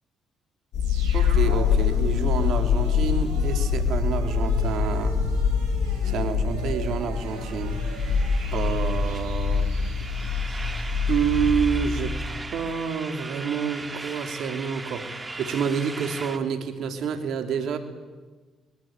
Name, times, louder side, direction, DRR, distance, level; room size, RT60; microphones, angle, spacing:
sound 1, 0.7-12.4, left 6 dB, 75° left, 2.8 m, -25 dB
sound 2, 0.8-11.6 11.9-12.0, right 7 dB, 85° right, 5.3 m, -38 dB
voice 1, 1.1-5.2 6.0-7.8 8.5-9.7 11.1-12.2 12.5-15.1 15.4-17.8, right 7 dB, 70° right, 7 dB, 3.0 m, -28 dB
sound 3, 7.3-16.4, right 3 dB, 30° right, 2.6 m, -39 dB
25.5 x 22.0 x 8.9 m, 1.3 s
supercardioid pair, 55°, 0 cm